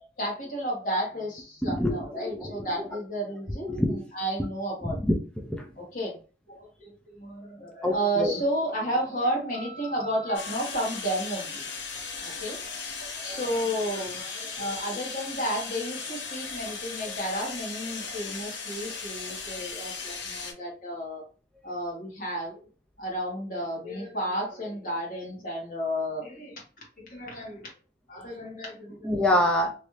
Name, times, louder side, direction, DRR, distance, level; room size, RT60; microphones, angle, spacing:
voice 1, 0.0-5.0 5.8-6.2 6.5-11.6 12.2-12.6 13.2-21.2 21.6-22.7 23.0-26.6 27.0-27.7 28.1-29.1, right 1 dB, 45° left, -2 dB, 1.4 m, -32 dB
voice 2, 1.6-2.9 3.6-4.0 4.8-5.7 7.8-8.4 29.0-29.7, left 1 dB, 5° left, 0 dB, 0.4 m, -26 dB
sound 1, 10.3-20.5, left 4 dB, 75° left, 0.9 m, -37 dB
3.1 x 2.6 x 3.1 m, 0.38 s
head